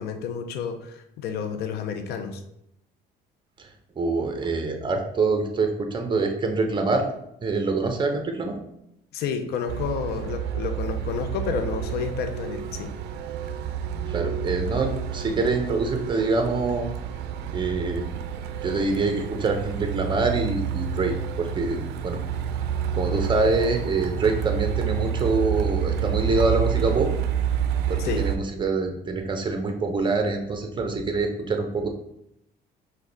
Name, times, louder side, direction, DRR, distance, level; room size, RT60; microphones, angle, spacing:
voice 1, 0.0-2.4 9.1-12.9 28.0-28.3, left 6 dB, 75° left, 7 dB, 0.6 m, -30 dB
voice 2, 4.0-7.1 7.4-8.6 14.1-16.9 17.5-18.1 18.6-22.2 22.9-27.1 27.9-31.9, right 3 dB, 30° right, 4 dB, 0.8 m, -25 dB
Truck, 9.7-28.4, right 8 dB, 80° right, 0.4 m, -29 dB
4.9 x 2.3 x 3.9 m, 0.78 s
cardioid pair, 110°, 17 cm